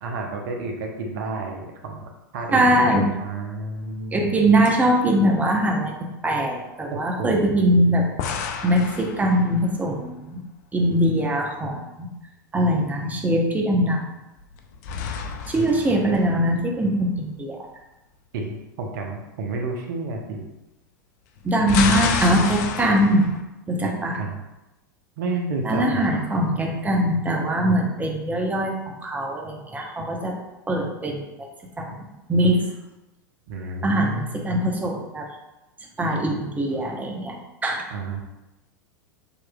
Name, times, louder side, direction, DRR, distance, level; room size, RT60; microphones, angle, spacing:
voice 1, 0.0-4.3 6.9-8.0 18.3-20.5 23.8-24.4 25.2-26.2 33.5-34.6 37.9-38.2, right 3 dB, 60° right, 2 dB, 0.9 m, -31 dB
voice 2, 2.5-3.1 4.1-8.1 8.6-10.4 10.7-12.1 12.5-14.0 15.5-17.6 21.4-23.3 23.7-24.2 25.6-30.3 30.7-31.5 31.8-31.9 32.3-32.7 33.8-35.3 36.0-37.8, right 1 dB, 15° right, 0 dB, 0.9 m, -22 dB
sound 1, 3.8-4.4 4.6-4.8 8.2-9.9 14.4-16.9 21.4-23.4, left 6 dB, 55° left, 0.5 m, -29 dB
6.7 x 3.0 x 2.3 m, 0.99 s
hypercardioid pair, 95°, 11 cm